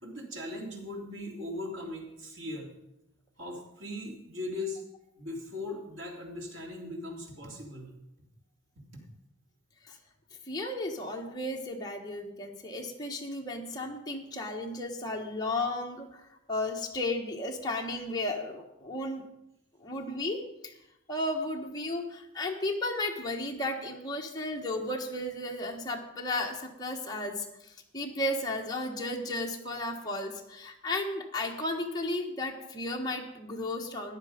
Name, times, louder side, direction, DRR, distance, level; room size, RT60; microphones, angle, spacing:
voice 1, 0.0-2.7 3.4-4.8 5.2-7.9 8.9-9.0, left 2 dB, 85° right, 0 dB, 3.1 m, -39 dB
voice 2, 10.5-19.3 19.8-20.7 21.1-34.2, left 2 dB, 20° left, 0 dB, 1.4 m, -34 dB
14.5 x 10.0 x 5.1 m, 0.87 s
head